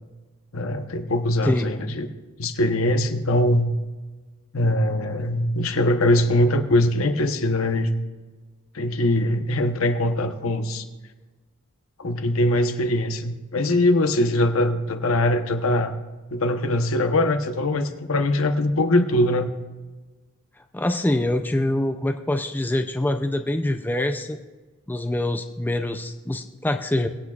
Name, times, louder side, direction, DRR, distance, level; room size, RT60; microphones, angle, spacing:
voice 1, 0.5-2.1 2.4-3.7 4.5-7.9 8.7-10.8 12.0-15.9 16.3-19.5, left 1 dB, 75° left, 7 dB, 0.9 m, -22 dB
voice 2, 20.7-24.4 24.9-27.1, left 1 dB, 10° left, 7 dB, 0.4 m, -25 dB
24.0 x 8.4 x 2.4 m, 1.3 s
head